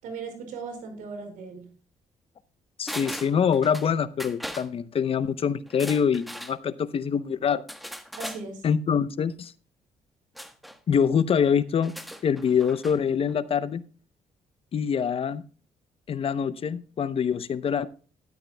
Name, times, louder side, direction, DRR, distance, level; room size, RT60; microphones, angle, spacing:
voice 1, 0.0-1.7 8.2-8.6, right 4 dB, 80° right, 5.1 m, -37 dB
voice 2, 2.8-7.6 8.6-9.5 10.9-11.9 12.2-13.8 14.7-15.4 16.1-17.9, left 7 dB, 45° left, 0.7 m, -25 dB
sound 1, 2.9-3.9 4.2-4.7 5.7-6.6 7.7-8.4 10.4-10.8 11.8-13.0 13.3-13.4, equal, ahead, 1.2 m, -39 dB
13.0 x 12.0 x 2.2 m
cardioid pair, 90°, 13 cm